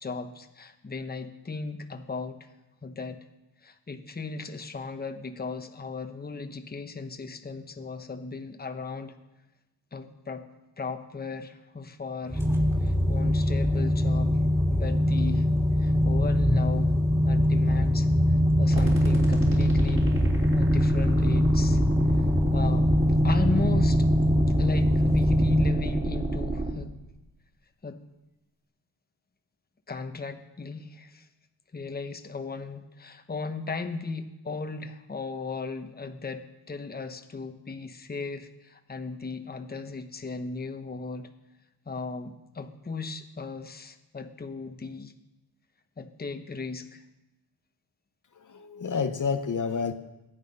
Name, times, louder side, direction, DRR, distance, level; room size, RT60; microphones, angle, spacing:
voice 1, 0.0-2.5 2.8-3.2 3.6-9.1 9.9-10.4 10.8-12.4 12.8-14.4 14.7-15.5 15.8-17.0 17.2-18.1 18.6-20.0 20.5-21.8 22.5-22.9 23.2-24.1 24.6-26.9 27.8-28.0 29.9-31.3 31.7-41.3 41.9-45.1 46.0-47.0, left 4 dB, 25° left, 7 dB, 1.1 m, -36 dB
sound 1, 12.3-25.7, left 1 dB, 5° right, 2.7 m, -23 dB
sound 2, 18.7-26.7, right 2 dB, 30° right, 4.1 m, -29 dB
voice 2, 48.3-49.9, left 5 dB, 50° left, 7 dB, 1.0 m, -29 dB
21.0 x 8.8 x 5.5 m, 0.99 s
cardioid pair, 85°, 40 cm